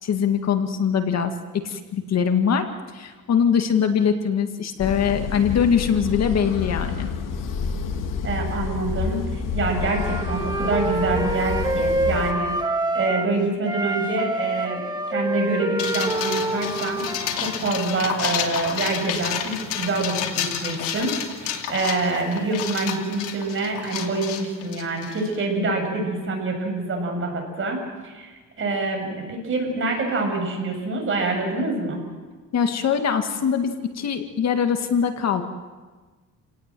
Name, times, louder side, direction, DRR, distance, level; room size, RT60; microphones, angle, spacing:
voice 1, 0.0-2.7 2.9-7.1 32.5-35.4, left 7 dB, 50° left, 6 dB, 2.0 m, -22 dB
sound 1, 4.8-12.3, left 5 dB, 75° left, 2.6 m, -29 dB
voice 2, 8.2-12.6 12.9-17.0 17.3-32.0, right 3 dB, 40° right, 2 dB, 7.6 m, -26 dB
Wind instrument woodwind instrument, 9.7-13.3 13.6-17.6, right 2 dB, 15° right, 1.9 m, -27 dB
sound 2, 15.8-25.3, left 9 dB, 90° left, 2.7 m, -30 dB
29.5 x 18.0 x 7.7 m, 1.3 s
cardioid pair, 125°, 33 cm